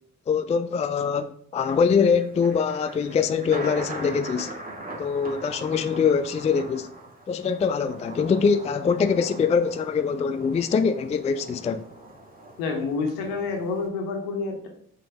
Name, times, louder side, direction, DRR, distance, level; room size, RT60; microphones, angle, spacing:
voice 1, 0.3-4.5 5.0-6.9 7.3-11.8, left 6 dB, 20° left, 0.4 m, -23 dB
Thunder, 1.6-13.9, right 1 dB, 20° right, 2.2 m, -41 dB
voice 2, 12.6-14.7, left 4 dB, 70° left, 1.4 m, -28 dB
6.1 x 5.8 x 3.4 m
figure-of-eight pair, 40°, 39 cm